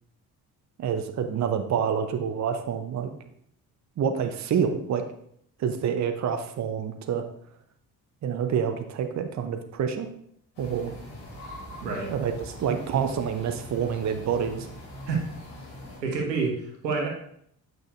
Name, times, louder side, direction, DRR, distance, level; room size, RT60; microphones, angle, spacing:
voice 1, 0.8-3.1 4.0-5.0 5.6-7.2 8.2-10.1 10.6-10.9 12.1-12.3 12.6-14.7, right 7 dB, 35° right, 7 dB, 0.8 m, -27 dB
sound 1, 10.5-16.0, equal, 60° left, 2.9 m, -42 dB
voice 2, 11.8-12.1 15.0-15.2 16.0-17.1, right 4 dB, 85° right, 0 dB, 1.2 m, -28 dB
8.1 x 6.3 x 2.6 m, 0.69 s
figure-of-eight pair, 45°, 49 cm